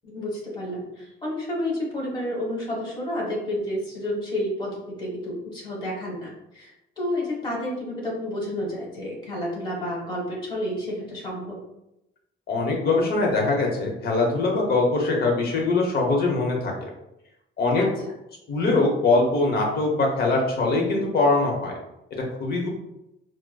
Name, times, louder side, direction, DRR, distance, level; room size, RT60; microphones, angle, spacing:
voice 1, 0.0-11.6 17.7-17.9, left 1 dB, 25° left, -3 dB, 1.1 m, -30 dB
voice 2, 12.5-16.9 17.6-17.9 18.5-21.7 22.4-22.7, left 3 dB, 50° left, 0 dB, 0.8 m, -22 dB
4.7 x 2.1 x 2.2 m, 0.88 s
cardioid pair, 170°, 20 cm